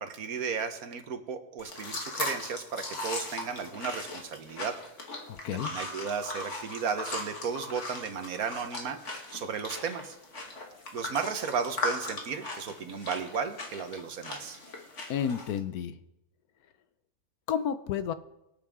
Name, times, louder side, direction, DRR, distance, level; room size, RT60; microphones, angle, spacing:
voice 1, 0.0-4.7 5.5-10.2 10.9-14.6, right 6 dB, 75° right, 8 dB, 1.6 m, -34 dB
sound 1, 1.6-15.6, left 2 dB, 50° left, 2.1 m, -39 dB
voice 2, 5.3-5.7 15.1-16.0 17.5-18.1, left 8 dB, 80° left, 12 dB, 1.2 m, -31 dB
23.5 x 8.7 x 3.7 m, 0.90 s
omnidirectional pair, 1.6 m